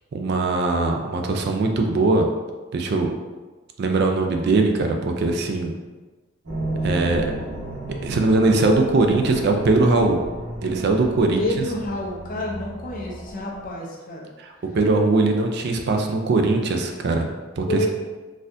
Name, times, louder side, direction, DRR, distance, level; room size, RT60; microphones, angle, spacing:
voice 1, 0.1-2.3 2.7-3.1 3.8-5.7 6.8-7.2 8.0-10.2 10.6-11.4 14.4-17.3 17.6-17.8, right 3 dB, 50° right, 3 dB, 0.3 m, -20 dB
sound 1, 6.5-13.7, right 1 dB, 75° right, 1.2 m, -33 dB
voice 2, 11.4-14.3 17.7-17.9, left 1 dB, 40° left, -3 dB, 0.6 m, -29 dB
4.1 x 2.4 x 2.6 m, 1.3 s
head